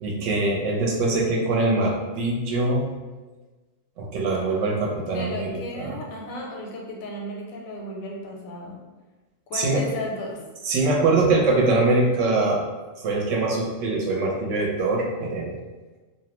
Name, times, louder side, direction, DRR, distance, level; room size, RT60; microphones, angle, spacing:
voice 1, 0.0-2.9 4.0-6.0 9.5-9.9 10.6-12.6 13.0-15.6, right 2 dB, 70° right, -2 dB, 0.9 m, -23 dB
voice 2, 5.1-8.8 9.5-10.4, left 1 dB, 85° left, -1 dB, 1.0 m, -34 dB
2.5 x 2.1 x 2.9 m, 1.2 s
omnidirectional pair, 1.4 m